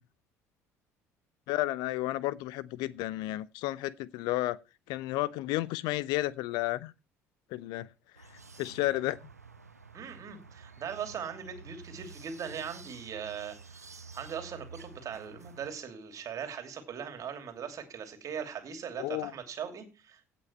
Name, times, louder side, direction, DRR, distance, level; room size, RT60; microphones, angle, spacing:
voice 1, 1.5-4.6 4.9-6.9 7.5-7.9 8.6-9.2 19.0-19.3, left 17 dB, 55° left, 0.5 m, -32 dB
sound 1, 8.1-15.7, right 5 dB, 85° right, 0.8 m, -50 dB
voice 2, 9.9-13.9 14.1-20.2, right 7 dB, 45° right, 2.8 m, -40 dB
17.0 x 6.0 x 4.4 m
figure-of-eight pair, 55°, 8 cm